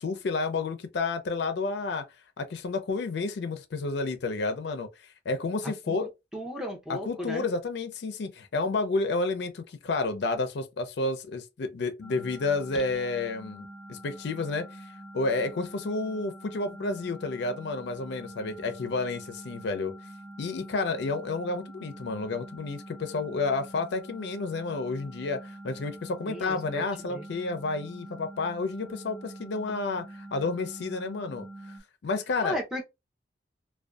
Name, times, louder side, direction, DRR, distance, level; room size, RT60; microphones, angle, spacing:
voice 1, 0.0-2.0 2.4-4.9 5.3-6.1 7.1-14.7 15.1-19.9 20.4-31.5 32.0-32.6, left 3 dB, 65° left, 0.4 m, -30 dB
voice 2, 5.6-7.5 26.3-27.2 32.4-32.8, equal, 5° right, 0.6 m, -36 dB
sound 1, 12.0-31.8, right 1 dB, 45° right, 1.2 m, -45 dB
2.5 x 2.2 x 2.2 m
head